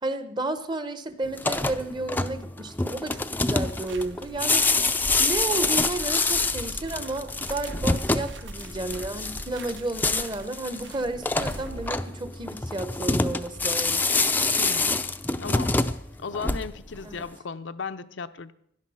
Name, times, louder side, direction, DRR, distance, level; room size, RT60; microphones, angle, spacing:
voice 1, 0.0-4.7 5.2-14.0 17.0-17.2, right 2 dB, 25° right, 11 dB, 0.9 m, -32 dB
sound 1, 1.3-17.0, left 3 dB, 10° left, 0.5 m, -26 dB
sound 2, 3.7-11.9, right 1 dB, 70° right, 1.0 m, -41 dB
voice 2, 14.6-15.0 15.4-15.8 16.2-18.5, left 5 dB, 70° left, 10 dB, 0.6 m, -35 dB
17.0 x 11.5 x 5.6 m, 0.71 s
head